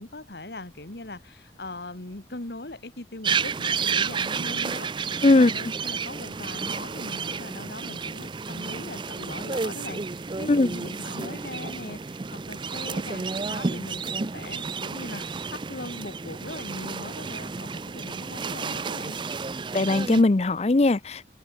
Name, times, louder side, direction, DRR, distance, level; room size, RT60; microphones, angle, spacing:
voice 1, 0.0-19.2, left 2 dB, 65° left, 1.9 m, -40 dB
sound 1, 0.6-17.2, left 1 dB, 20° left, 7.9 m, -63 dB
sound 2, 3.2-20.2, right 5 dB, 25° right, 0.4 m, -31 dB
voice 2, 19.7-21.3, left 2 dB, 35° left, 0.5 m, -19 dB
head